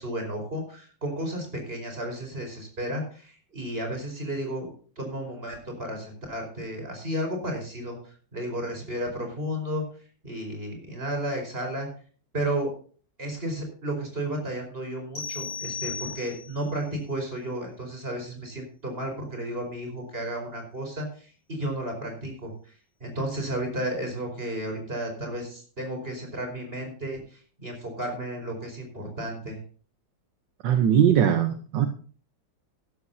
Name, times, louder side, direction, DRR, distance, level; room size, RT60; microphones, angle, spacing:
voice 1, 0.0-9.8 10.2-11.9 12.3-12.7 13.2-22.7 23.0-29.6, right 1 dB, 30° right, 3 dB, 5.1 m, -33 dB
sound 1, 15.2-16.7, left 6 dB, 30° left, 4.6 m, -35 dB
voice 2, 30.6-31.9, right 9 dB, 70° right, 7 dB, 1.6 m, -20 dB
16.0 x 12.5 x 2.8 m, 0.41 s
omnidirectional pair, 2.1 m